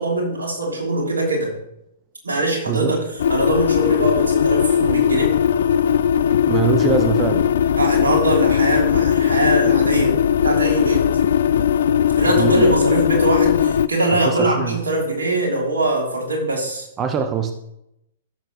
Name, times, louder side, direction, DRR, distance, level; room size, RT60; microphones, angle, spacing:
voice 1, 0.0-1.5 2.2-5.3 7.8-10.2 10.4-11.1 12.1-16.9, right 2 dB, 80° right, -1 dB, 3.2 m, -22 dB
voice 2, 2.7-3.0 6.5-7.5 12.2-12.7 14.1-14.8 17.0-17.5, right 7 dB, 25° right, 7 dB, 0.9 m, -22 dB
sound 1, 3.2-13.9, left 9 dB, 65° left, 0.4 m, -18 dB
15.0 x 6.7 x 3.1 m, 0.80 s
figure-of-eight pair, 115°, 0 cm